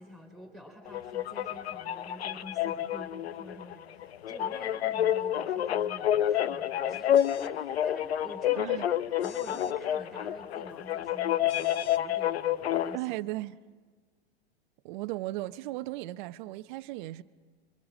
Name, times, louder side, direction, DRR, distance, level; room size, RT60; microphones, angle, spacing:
voice 1, 0.0-9.0 9.2-13.2, equal, ahead, 4.6 m, -48 dB
sound 1, 0.9-13.0, left 11 dB, 85° left, 0.8 m, -29 dB
sound 2, 7.1-7.6 9.2-9.8 11.5-12.0, left 12 dB, 40° left, 0.9 m, -50 dB
voice 2, 12.9-13.6 14.8-17.2, right 18 dB, 50° right, 0.8 m, -36 dB
30.0 x 23.5 x 7.4 m
hypercardioid pair, 130°, 31 cm